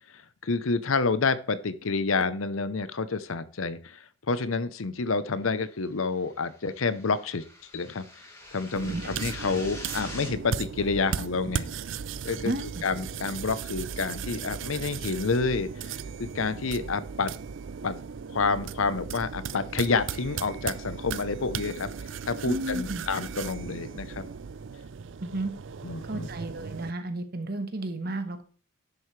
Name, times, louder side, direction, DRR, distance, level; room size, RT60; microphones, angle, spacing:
voice 1, 0.1-7.4 7.7-8.1 8.5-11.7 12.2-12.5 12.8-17.3 17.8-18.0 18.3-21.9 22.3-24.3 25.8-26.3, left 4 dB, 75° left, 14 dB, 0.7 m, -29 dB
sound 1, 5.9-10.3, left 1 dB, 15° left, 2.8 m, -45 dB
sound 2, 8.8-26.9, right 6 dB, 60° right, 0.4 m, -37 dB
voice 2, 12.4-12.8 22.5-23.1 25.2-25.5 26.1-28.4, right 1 dB, 45° right, 8 dB, 1.3 m, -32 dB
10.5 x 7.9 x 3.2 m, 0.40 s
head